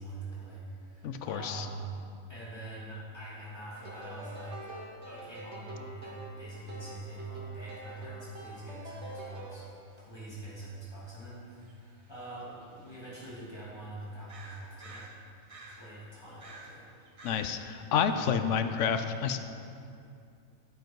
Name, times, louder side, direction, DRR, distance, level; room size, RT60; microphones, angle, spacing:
voice 1, 0.0-1.9 2.3-4.7 5.0-15.1 15.8-16.9 18.1-18.5, right 2 dB, 20° left, -8 dB, 2.7 m, -44 dB
voice 2, 1.0-1.7 17.2-19.4, left 7 dB, 70° left, 9 dB, 0.8 m, -29 dB
sound 1, 3.8-9.6, right 1 dB, 55° right, 1.4 m, -46 dB
sound 2, 9.6-9.7 10.0-10.1 11.6-13.4 13.9-14.0 14.3-16.0 16.3-17.7 18.0-18.1, right 2 dB, 30° right, 0.7 m, -51 dB
9.8 x 7.9 x 4.6 m, 2.5 s
omnidirectional pair, 1.4 m